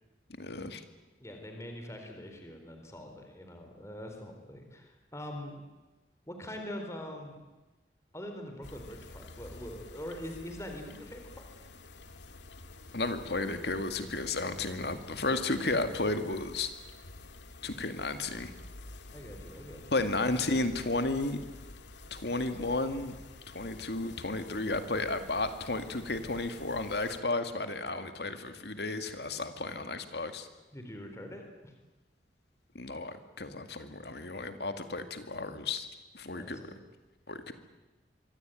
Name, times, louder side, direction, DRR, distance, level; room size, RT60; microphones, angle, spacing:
voice 1, 0.4-0.8 12.9-16.7 17.6-18.5 19.9-21.4 22.1-23.1 23.5-30.5 32.7-35.9 36.1-36.6 37.3-37.5, left 2 dB, 65° left, 8 dB, 2.2 m, -33 dB
voice 2, 1.2-5.6 6.3-7.4 8.1-11.4 15.1-15.3 19.1-20.0 30.7-31.7 36.3-36.8, left 1 dB, 15° left, 4 dB, 4.0 m, -43 dB
sound 1, 8.6-27.2, left 2 dB, 80° left, 2.0 m, -50 dB
25.0 x 24.5 x 9.2 m, 1.1 s
head